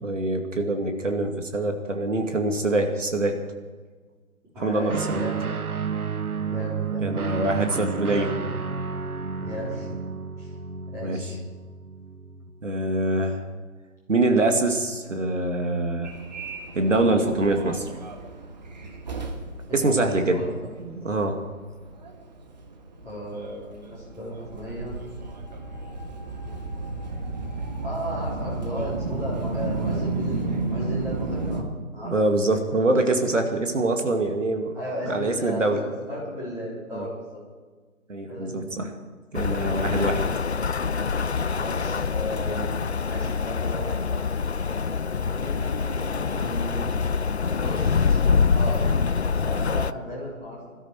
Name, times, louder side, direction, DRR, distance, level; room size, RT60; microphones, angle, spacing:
voice 1, 0.0-3.4 4.6-5.2 7.0-8.3 11.0-11.2 12.6-13.4 14.1-16.1 16.7-17.8 19.7-20.4 20.8-21.4 32.0-34.7 35.0-35.8 36.9-37.0 38.1-38.9 39.3-40.2, right 2 dB, 60° right, 4 dB, 2.2 m, -24 dB
voice 2, 4.5-5.4 6.4-7.3 9.4-9.9 10.4-10.5 10.9-11.4 19.7-20.8 23.0-25.0 27.8-31.7 31.9-32.2 34.7-37.4 38.3-38.8 39.8-40.2 41.5-42.7 43.0-44.0 45.3-46.9 47.5-48.2 48.5-48.8 49.4-50.7, equal, 5° right, -8 dB, 3.7 m, -35 dB
Guitar, 4.9-12.6, right 6 dB, 85° right, 1.0 m, -31 dB
Subway metro underground, 16.0-31.6, right 3 dB, 30° right, 1.5 m, -33 dB
Rain, 39.3-49.9, left 5 dB, 50° left, 0.5 m, -25 dB
21.0 x 13.0 x 4.7 m, 1.4 s
figure-of-eight pair, 155°, 43 cm